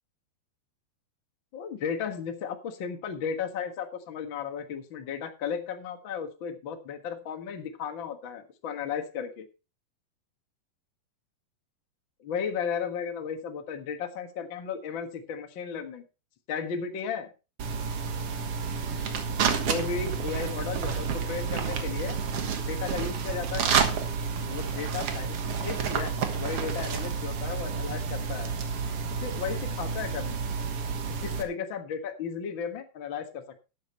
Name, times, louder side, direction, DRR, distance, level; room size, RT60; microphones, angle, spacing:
voice 1, 1.5-9.5 12.2-16.0 16.5-17.3 19.7-22.2 22.7-23.8 24.5-28.5 29.1-30.4 31.2-33.6, left 7 dB, 60° left, 6 dB, 1.3 m, -35 dB
sound 1, 17.6-31.4, right 6 dB, 60° right, 1.7 m, -30 dB
12.0 x 8.8 x 4.4 m, 0.31 s
omnidirectional pair, 4.5 m